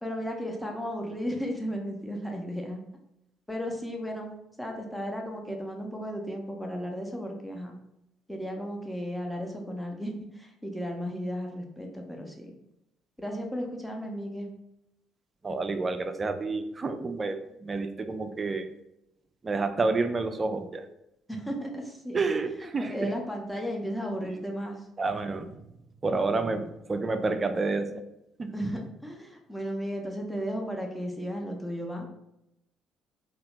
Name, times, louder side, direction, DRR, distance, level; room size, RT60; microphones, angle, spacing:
voice 1, 0.0-2.8 3.5-4.3 4.6-7.8 8.3-12.5 13.2-14.5 21.3-22.2 22.6-24.8 28.5-32.1, equal, 5° left, 1 dB, 0.7 m, -34 dB
voice 2, 15.4-18.7 19.4-20.9 22.1-23.2 25.0-25.6 26.0-28.0 28.4-28.7, right 3 dB, 30° right, 9 dB, 0.4 m, -29 dB
2.9 x 2.8 x 3.2 m, 0.84 s
figure-of-eight pair, 45°, 0 cm